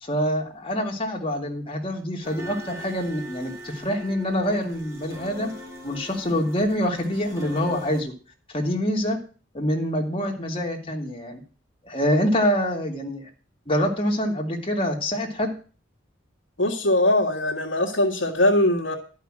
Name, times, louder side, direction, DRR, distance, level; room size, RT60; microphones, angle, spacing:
voice 1, 0.0-5.5 5.8-8.1 8.5-9.2 9.5-11.4 11.8-13.3 13.7-15.5, equal, 30° left, 0 dB, 2.3 m, -25 dB
sound 1, 2.2-8.0, equal, 15° right, 3.1 m, -40 dB
voice 2, 16.6-18.9, left 1 dB, 70° left, -3 dB, 1.7 m, -21 dB
11.5 x 5.7 x 7.5 m, 0.37 s
head